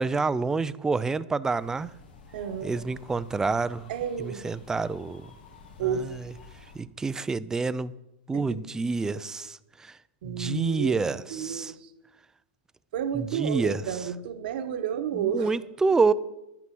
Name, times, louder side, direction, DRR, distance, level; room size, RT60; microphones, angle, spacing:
voice 1, 0.0-1.9 2.6-3.9 4.2-5.3 6.7-7.9 8.3-9.9 10.2-11.7 13.1-13.8 15.1-16.1, right 4 dB, 10° right, 0.4 m, -27 dB
sound 1, 1.4-6.8, left 4 dB, 85° left, 2.7 m, -51 dB
voice 2, 2.3-2.8 3.9-4.4 5.8-6.1 8.3-8.6 10.2-11.9 12.9-15.5, right 8 dB, 70° right, 1.3 m, -31 dB
11.5 x 9.6 x 6.0 m
supercardioid pair, 130°, 5 cm